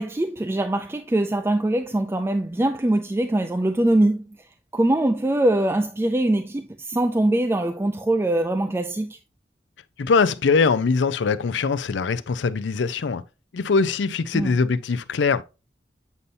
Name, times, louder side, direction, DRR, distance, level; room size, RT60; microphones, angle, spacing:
voice 1, 0.0-4.2 4.7-9.2 14.3-14.5, right 1 dB, 15° right, 0.3 m, -22 dB
voice 2, 10.0-13.2 13.5-15.4, left 4 dB, 85° left, 0.5 m, -22 dB
8.2 x 5.5 x 2.6 m
head